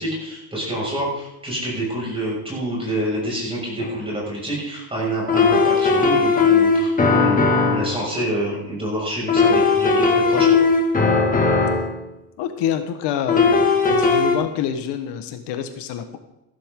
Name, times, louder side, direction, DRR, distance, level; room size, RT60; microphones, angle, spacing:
voice 1, 0.0-10.6, right 1 dB, 15° right, -4 dB, 6.1 m, -27 dB
sound 1, 3.8-3.9 5.3-8.0 9.3-12.0 13.3-14.4, left 4 dB, 20° left, 1.9 m, -17 dB
voice 2, 12.4-13.6 13.9-16.2, left 9 dB, 80° left, 8 dB, 1.4 m, -26 dB
14.5 x 12.5 x 3.7 m, 0.92 s
cardioid pair, 150°, 42 cm